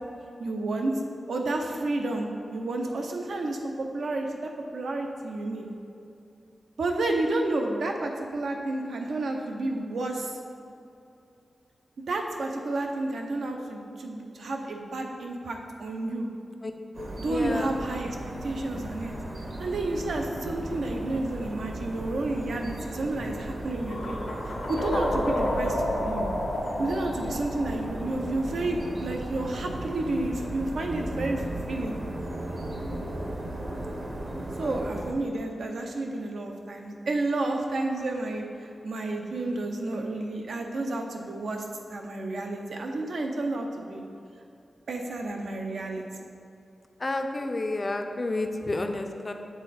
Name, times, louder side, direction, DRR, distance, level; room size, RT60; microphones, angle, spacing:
voice 1, 0.4-1.0 1.3-5.7 6.8-10.4 12.1-16.3 17.2-18.2 18.4-19.1 19.6-24.3 24.7-26.2 26.8-31.9 34.6-44.0 44.9-46.3, right 2 dB, 85° right, 2 dB, 0.7 m, -31 dB
sound 1, 16.9-35.1, right 1 dB, 45° right, 0.8 m, -36 dB
voice 2, 17.0-17.7 34.6-34.8 47.0-49.3, left 2 dB, 30° left, 5 dB, 0.4 m, -31 dB
sound 2, 23.9-28.8, left 1 dB, 90° left, 1.4 m, -30 dB
7.1 x 4.0 x 4.2 m, 2.6 s
wide cardioid pair, 175°, 0 cm